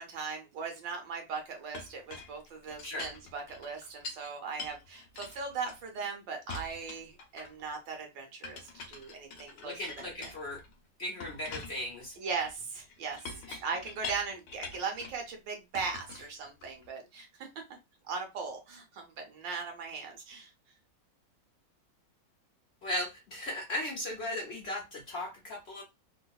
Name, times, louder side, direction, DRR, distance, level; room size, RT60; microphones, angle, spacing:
voice 1, 0.0-10.3 12.2-13.3 13.6-17.6 18.1-20.5, right 5 dB, 90° right, 4 dB, 1.6 m, -39 dB
Chink clink, 1.7-4.3 4.6-6.1 6.5-7.7 8.4-10.7 11.2-15.2 15.7-16.9, left 4 dB, 75° left, 1.3 m, -45 dB
voice 2, 9.5-10.6 11.0-12.2 13.5-13.6 22.8-25.8, left 1 dB, 55° left, -1 dB, 0.7 m, -37 dB
3.8 x 2.4 x 2.3 m, 0.24 s
omnidirectional pair, 1.9 m